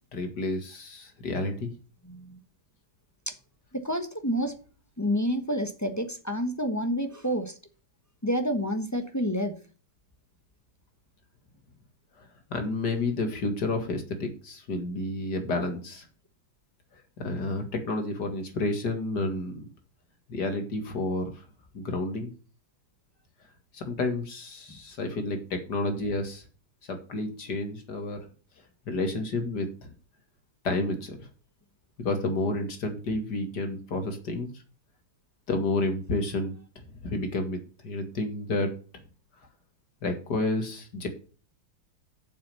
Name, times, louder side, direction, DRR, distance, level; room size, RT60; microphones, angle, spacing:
voice 1, 0.1-1.7 12.2-16.1 17.2-19.7 20.3-21.3 21.7-22.3 23.7-26.4 26.9-28.2 28.9-29.9 30.6-31.3 32.0-34.5 35.5-36.5 37.0-37.6 37.8-39.0 40.0-41.1, left 2 dB, 50° left, 5 dB, 2.5 m, -30 dB
voice 2, 2.0-2.4 3.3-3.4 3.7-4.6 5.0-7.6 8.2-9.6 24.7-24.8, equal, 15° left, 6 dB, 0.7 m, -29 dB
7.6 x 6.9 x 6.9 m, 0.38 s
omnidirectional pair, 2.3 m